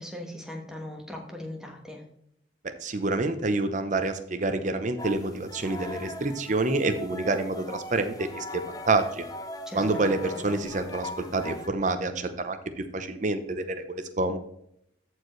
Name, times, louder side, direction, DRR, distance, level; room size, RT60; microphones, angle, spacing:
voice 1, 0.0-2.0 9.7-10.4, left 1 dB, 5° right, 1 dB, 1.3 m, -39 dB
voice 2, 2.8-9.3 9.7-14.4, right 2 dB, 40° right, 9 dB, 0.8 m, -28 dB
sound 1, 5.0-11.7, left 1 dB, 20° left, 0.6 m, -40 dB
14.0 x 4.7 x 3.2 m, 0.73 s
head